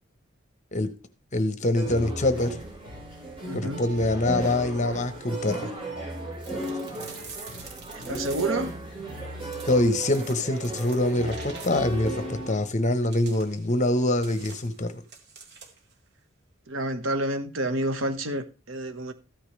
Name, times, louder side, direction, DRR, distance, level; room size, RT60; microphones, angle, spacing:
voice 1, 1.3-2.6 3.5-5.8 9.7-15.0, left 1 dB, 35° left, 1.1 m, -25 dB
sound 1, 1.7-12.5, right 1 dB, 30° right, 5.1 m, -35 dB
voice 2, 3.4-3.8 7.9-8.7 16.7-19.1, right 1 dB, 85° right, 1.4 m, -29 dB
sound 2, 6.4-8.8 9.4-12.0 12.9-15.9, right 5 dB, 60° right, 2.1 m, -47 dB
14.0 x 8.8 x 3.3 m
head